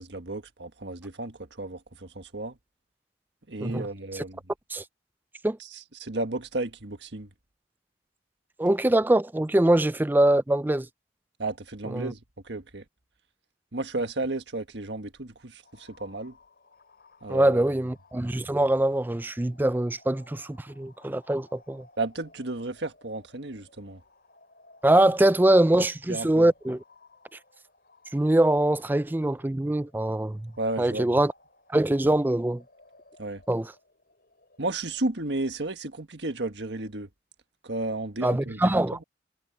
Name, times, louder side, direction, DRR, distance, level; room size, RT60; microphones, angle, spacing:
voice 1, 0.0-2.6 3.5-4.4 6.0-7.3 11.4-12.8 13.7-16.4 17.2-17.6 22.0-24.0 26.1-26.5 30.6-31.1 33.2-33.4 34.6-37.1 37.6-39.0, right 2 dB, 65° right, 1.6 m, -33 dB
voice 2, 8.6-10.9 11.9-12.1 17.3-21.9 24.8-26.8 28.1-30.5 30.8-31.3 31.7-32.6 33.5-33.7 38.2-39.0, right 1 dB, 10° right, 0.4 m, -23 dB
sound 1, 15.6-35.0, left 2 dB, 55° left, 6.1 m, -59 dB
head